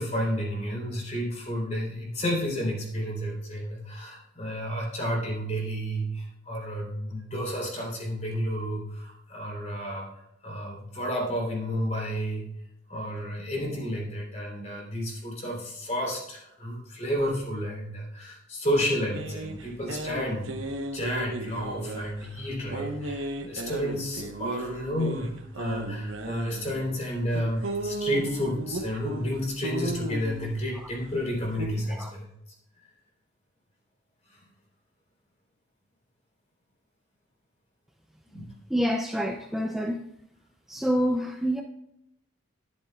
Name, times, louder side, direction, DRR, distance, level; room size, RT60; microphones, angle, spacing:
voice 1, 0.0-10.1 10.4-12.5 12.9-20.5 20.9-32.3 38.3-38.4, equal, 35° left, -2 dB, 3.5 m, -31 dB
sound 1, 19.1-31.7, right 2 dB, 85° right, 1.1 m, -36 dB
voice 2, 38.7-40.0 40.7-41.6, equal, ahead, 2 dB, 0.4 m, -27 dB
12.0 x 10.5 x 2.4 m, 0.81 s
head